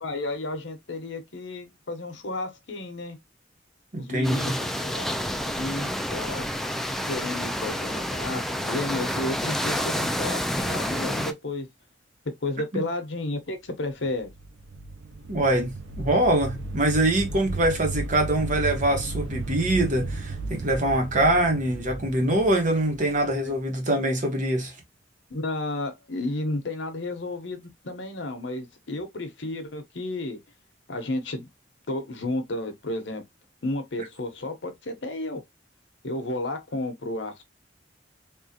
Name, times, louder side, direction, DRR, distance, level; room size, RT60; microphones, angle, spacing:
voice 1, 0.0-3.2 4.0-5.2 5.4-6.5 7.1-11.7 12.4-14.3 23.3-23.5 25.3-30.4 30.9-31.5 31.9-33.2 33.6-35.4 36.0-37.4, left 2 dB, 75° left, 0.9 m, -32 dB
voice 2, 3.9-4.6 12.7-12.8 15.3-24.7, right 1 dB, 45° right, 1.1 m, -24 dB
sound 1, 4.2-11.3, equal, ahead, 0.3 m, -29 dB
sound 2, 14.0-23.8, right 3 dB, 70° right, 0.6 m, -35 dB
3.6 x 2.4 x 2.7 m
head